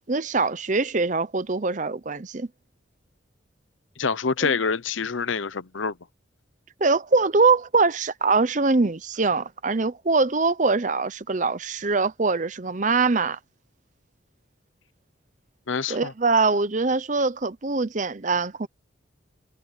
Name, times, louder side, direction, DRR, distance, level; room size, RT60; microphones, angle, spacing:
voice 1, 0.1-2.5 4.4-4.6 6.8-13.4 15.9-18.7, right 4 dB, 40° right, 0.8 m, -23 dB
voice 2, 4.0-5.9 15.7-16.1, left 5 dB, 80° left, 0.8 m, -26 dB
head